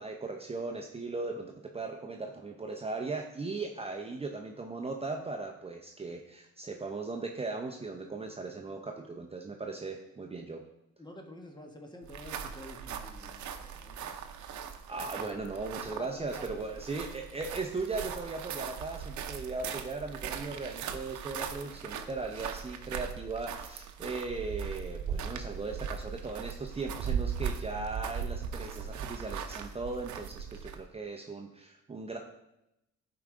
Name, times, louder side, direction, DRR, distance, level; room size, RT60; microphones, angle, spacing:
voice 1, 0.0-10.6 14.9-32.2, right 3 dB, 20° right, 2 dB, 0.8 m, -38 dB
voice 2, 11.0-14.4 15.2-15.3 16.0-16.6, left 1 dB, 15° left, 3 dB, 1.3 m, -49 dB
sound 1, 12.0-30.9, right 7 dB, 70° right, 0.8 m, -39 dB
11.5 x 4.9 x 3.8 m, 0.85 s
cardioid pair, 90°, 30 cm